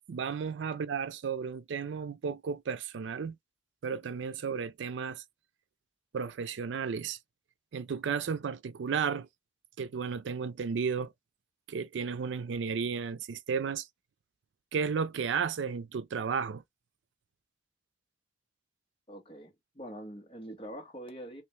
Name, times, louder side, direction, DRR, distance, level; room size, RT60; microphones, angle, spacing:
voice 1, 0.1-3.4 3.8-5.2 6.1-7.2 7.7-9.3 9.8-11.1 11.7-13.9 14.7-16.6, right 6 dB, 80° right, 0.4 m, -33 dB
voice 2, 19.1-21.4, equal, 30° left, 1.2 m, -44 dB
3.2 x 2.6 x 3.1 m
head